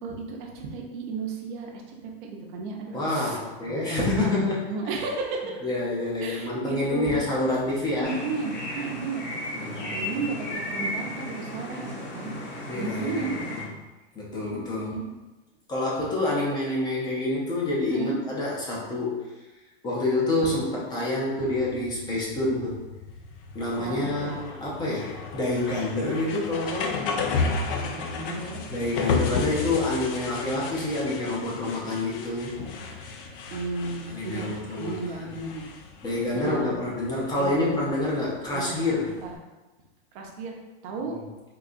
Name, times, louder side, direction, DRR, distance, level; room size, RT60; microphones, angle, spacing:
voice 1, 0.0-5.6 6.2-7.2 7.9-9.2 9.6-12.3 12.7-13.4 14.5-15.0 17.9-18.2 23.8-24.3 27.8-28.6 29.4-29.5 33.5-35.7 36.3-36.7 37.4-37.9 38.5-38.8 39.2-39.4 40.1-40.5 40.8-41.2, right 4 dB, 55° right, -1 dB, 0.7 m, -34 dB
voice 2, 2.9-4.6 5.6-8.2 9.5-10.2 12.7-13.4 14.1-15.0 15.7-19.2 19.8-22.8 23.5-27.0 28.7-32.5 34.1-35.3 36.0-39.2 41.0-41.2, left 2 dB, 15° left, -5 dB, 0.5 m, -27 dB
sound 1, 8.0-13.6, left 1 dB, 45° left, 1.4 m, -34 dB
sound 2, 21.4-39.3, left 4 dB, 60° left, 0.6 m, -34 dB
3.8 x 2.7 x 2.5 m, 1.1 s
supercardioid pair, 155°, 31 cm